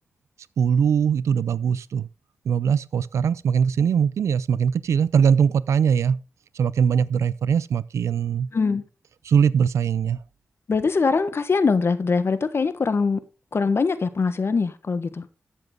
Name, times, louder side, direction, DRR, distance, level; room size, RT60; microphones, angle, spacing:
voice 1, 0.6-2.1 2.5-6.2 6.5-8.5 9.2-10.2, right 7 dB, 85° right, 0.5 m, -21 dB
voice 2, 8.5-8.8 10.7-13.2 13.5-15.3, left 4 dB, 55° left, 1.4 m, -22 dB
13.5 x 7.2 x 3.9 m
cardioid pair, 55°, 5 cm